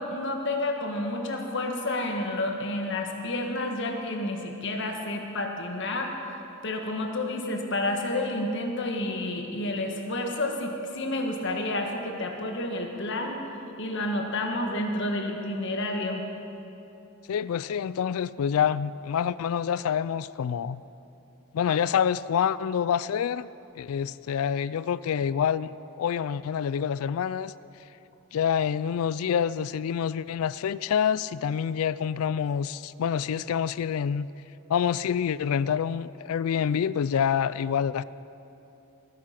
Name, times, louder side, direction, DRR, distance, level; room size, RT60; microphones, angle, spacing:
voice 1, 0.0-6.1 6.6-13.4 13.8-16.2, left 1 dB, 55° left, 3 dB, 1.6 m, -30 dB
voice 2, 17.3-20.8 21.5-23.5 23.8-25.7 25.9-27.5 28.3-34.3 34.7-38.0, left 8 dB, 70° left, 18 dB, 0.3 m, -27 dB
20.0 x 9.6 x 5.8 m, 3.0 s
head